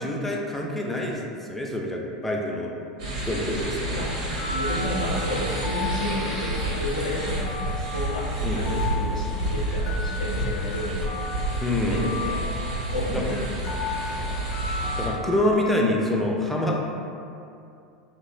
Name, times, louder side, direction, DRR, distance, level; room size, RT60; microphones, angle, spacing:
voice 1, 0.0-2.7 3.3-4.1 8.4-8.7 11.6-12.1 13.1-13.2 13.8-14.0 15.0-16.8, left 1 dB, 5° left, -2 dB, 0.3 m, -26 dB
sound 1, 3.0-15.1, right 1 dB, 75° right, 0.7 m, -29 dB
sound 2, 4.3-15.6, left 3 dB, 60° left, 0.7 m, -35 dB
voice 2, 4.5-11.3 11.9-12.5 12.9-14.5, left 1 dB, 90° left, -3 dB, 0.4 m, -32 dB
2.6 x 2.1 x 2.4 m, 2.5 s
hypercardioid pair, 85°, 4 cm